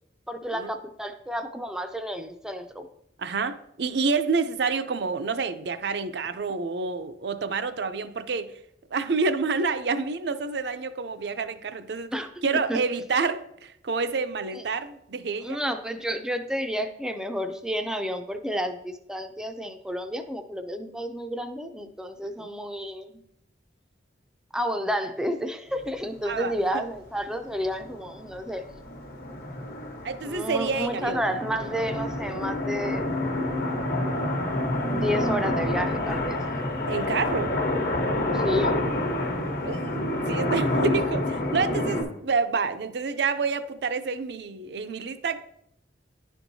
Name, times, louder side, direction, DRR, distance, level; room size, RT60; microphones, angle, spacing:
voice 1, 0.3-2.9 12.1-12.3 12.7-12.8 14.5-14.6 15.4-23.2 24.5-28.6 30.2-33.1 34.9-36.4 38.3-38.8, equal, 5° right, 7 dB, 0.4 m, -31 dB
voice 2, 3.2-8.5 8.9-12.1 12.4-15.6 22.4-22.5 26.2-26.8 30.0-31.4 36.9-37.5 39.6-45.4, right 4 dB, 65° right, 10 dB, 0.5 m, -28 dB
sound 1, 26.9-27.0 27.3-27.4 27.6-42.0, left 1 dB, 55° left, 1.0 m, -28 dB
10.5 x 4.5 x 2.7 m, 0.76 s
head